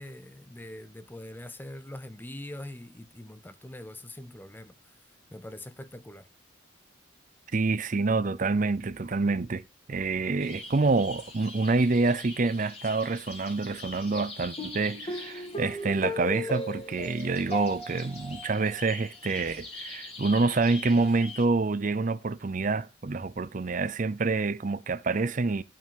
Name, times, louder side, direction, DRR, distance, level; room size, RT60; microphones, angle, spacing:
voice 1, 0.0-4.9 5.3-6.3, left 1 dB, 10° left, 0.6 m, -43 dB
voice 2, 7.5-9.6 9.9-25.6, right 3 dB, 40° right, 0.5 m, -27 dB
sound 1, 10.4-21.4, left 2 dB, 30° left, 2.7 m, -39 dB
11.5 x 5.8 x 4.6 m
head